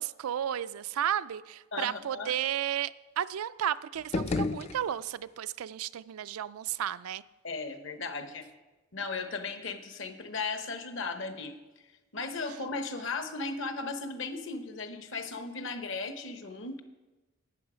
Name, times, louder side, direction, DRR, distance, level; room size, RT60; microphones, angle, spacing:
voice 1, 0.0-7.2, right 10 dB, 85° right, 15 dB, 0.4 m, -33 dB
voice 2, 1.7-2.3 7.4-8.5 8.9-11.5 12.1-16.8, left 4 dB, 60° left, 8 dB, 1.0 m, -36 dB
sound 1, 3.9-5.4, left 3 dB, 30° left, 0.3 m, -33 dB
11.5 x 8.6 x 5.0 m, 1.2 s
head